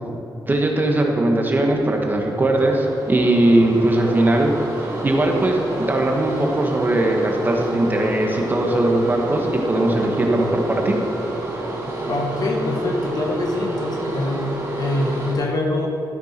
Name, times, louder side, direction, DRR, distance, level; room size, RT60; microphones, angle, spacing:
voice 1, 0.5-4.5 5.0-11.0, right 1 dB, 25° right, 1 dB, 1.3 m, -19 dB
sound 1, 1.7-15.3, right 1 dB, 40° right, 2.7 m, -29 dB
voice 2, 12.1-15.9, left 1 dB, 55° left, 1 dB, 1.6 m, -24 dB
13.0 x 10.0 x 4.5 m, 2.7 s
wide cardioid pair, 155°, 8 cm